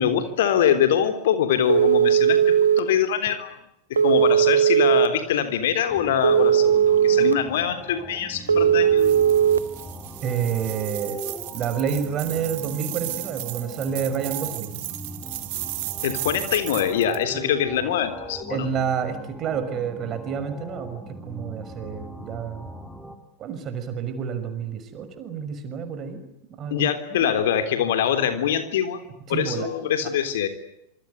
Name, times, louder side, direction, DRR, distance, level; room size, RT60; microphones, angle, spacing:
voice 1, 0.0-3.6 3.9-9.2 16.0-18.7 26.7-29.0 29.3-30.5, left 9 dB, 55° left, 9 dB, 3.5 m, -24 dB
Telephone, 1.7-2.8 4.0-5.1 6.2-7.3 8.5-9.6, right 9 dB, 75° right, 1.1 m, -17 dB
sound 1, 5.9-23.2, right 1 dB, ahead, 3.7 m, -40 dB
sound 2, 9.0-17.2, right 17 dB, 50° right, 2.9 m, -35 dB
voice 2, 10.2-11.2 11.5-14.9 18.5-22.7 23.4-26.2 26.5-27.4 29.3-29.7, right 7 dB, 30° right, 9 dB, 6.0 m, -29 dB
27.5 x 25.0 x 8.2 m, 0.79 s
figure-of-eight pair, 90°, 0 cm